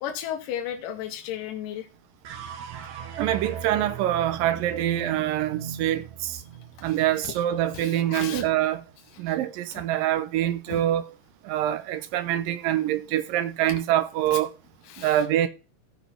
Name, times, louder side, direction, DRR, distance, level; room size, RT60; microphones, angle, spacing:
voice 1, 0.0-1.9 6.8-7.0 7.2-7.4 7.7-8.5 9.1-9.4 9.7-9.8 10.7-10.8 13.7-13.8 14.8-15.2, left 10 dB, 70° left, 2.7 m, -35 dB
sound 1, 2.2-8.6, right 9 dB, 65° right, 2.0 m, -39 dB
voice 2, 3.2-6.4 6.8-8.8 9.2-11.0 11.5-14.5 15.0-15.5, right 12 dB, 80° right, 2.4 m, -25 dB
14.5 x 5.2 x 4.4 m
omnidirectional pair, 4.1 m